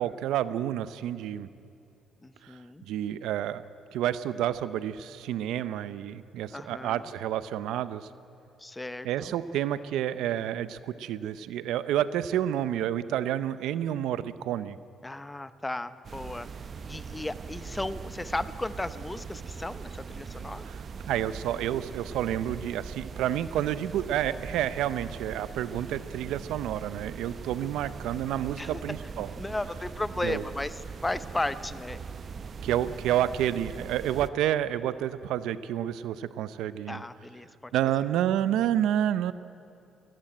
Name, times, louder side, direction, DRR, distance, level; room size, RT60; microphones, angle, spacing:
voice 1, 0.0-1.5 2.4-2.5 2.9-3.6 3.9-8.1 9.0-14.8 20.7-20.8 21.1-29.3 30.2-30.4 32.6-37.0 37.7-39.3, right 11 dB, 90° right, 15 dB, 0.6 m, -29 dB
voice 2, 2.2-2.8 6.5-7.0 8.6-9.3 15.0-16.5 16.8-20.7 28.6-28.8 29.1-32.0 36.9-37.7, left 2 dB, 15° left, 14 dB, 0.8 m, -35 dB
sound 1, 16.0-34.3, right 6 dB, 50° right, 0.7 m, -41 dB
18.0 x 16.0 x 9.0 m, 2.6 s
cardioid pair, 90°, 0 cm